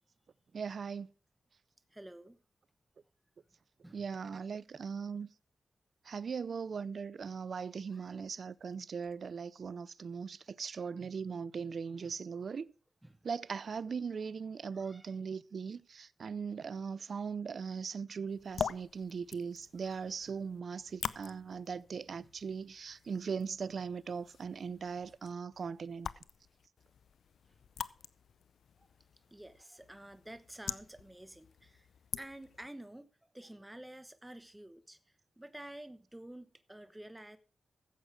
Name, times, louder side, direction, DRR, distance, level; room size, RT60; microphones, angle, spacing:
voice 1, 0.5-1.1 3.9-5.3 6.1-12.7 13.2-26.1, right 6 dB, 65° right, 0.5 m, -39 dB
voice 2, 1.9-2.4 3.8-4.0 7.9-8.2 12.0-12.1 13.0-13.2 14.7-15.1 27.5-27.6 28.8-28.9 29.3-31.9 32.2-35.0 35.4-37.4, right 1 dB, 10° right, 1.0 m, -50 dB
sound 1, 18.3-32.7, left 7 dB, 75° left, 0.5 m, -45 dB
13.5 x 8.0 x 4.8 m
supercardioid pair, 45°, 0 cm